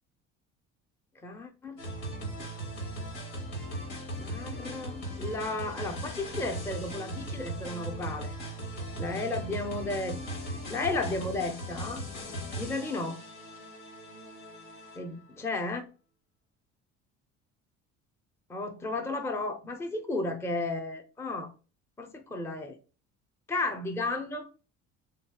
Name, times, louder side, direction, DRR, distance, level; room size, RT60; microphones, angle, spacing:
voice 1, 1.2-1.8 4.2-8.3 9.0-10.2 10.7-12.0 12.6-13.2 15.0-15.9 18.5-21.5 22.0-22.8 23.5-24.5, left 2 dB, 10° left, 0.5 m, -33 dB
sound 1, 1.8-15.3, right 1 dB, 85° left, 1.3 m, -38 dB
3.5 x 2.7 x 2.2 m
supercardioid pair, 90°, 33 cm